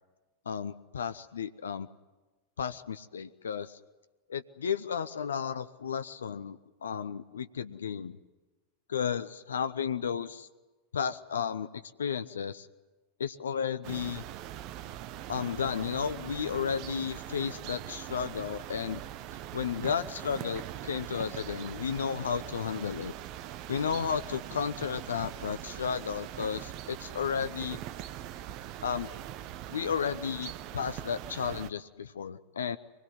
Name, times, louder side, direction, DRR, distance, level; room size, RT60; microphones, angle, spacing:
voice 1, 0.5-1.9 2.6-3.8 4.3-8.2 8.9-10.5 10.9-12.7 13.2-14.2 15.3-19.0 19.5-23.1 23.7-27.8 28.8-29.1 29.7-32.8, left 7 dB, 70° left, 12 dB, 0.7 m, -33 dB
sound 1, 13.8-31.7, right 12 dB, 40° right, 0.9 m, -42 dB
24.5 x 21.0 x 9.6 m, 1.2 s
figure-of-eight pair, 90°, 0 cm